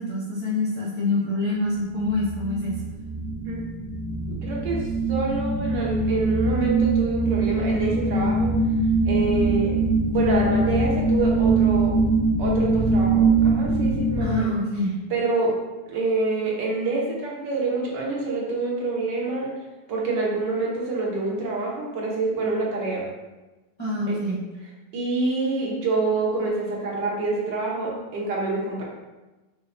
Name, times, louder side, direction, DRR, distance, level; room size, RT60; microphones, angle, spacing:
voice 1, 0.0-2.7 14.2-14.9 23.8-24.4, left 2 dB, 40° left, -8 dB, 0.4 m, -26 dB
sound 1, 1.8-14.2, right 3 dB, 50° right, 1.4 m, -22 dB
voice 2, 4.4-4.8 5.1-8.5 9.0-9.8 10.1-11.9 12.4-14.5 15.1-15.5 15.9-19.5 19.9-23.1 24.1-24.2 24.9-28.8, right 3 dB, 75° right, -3 dB, 1.6 m, -26 dB
5.5 x 2.2 x 3.9 m, 1.1 s
omnidirectional pair, 2.0 m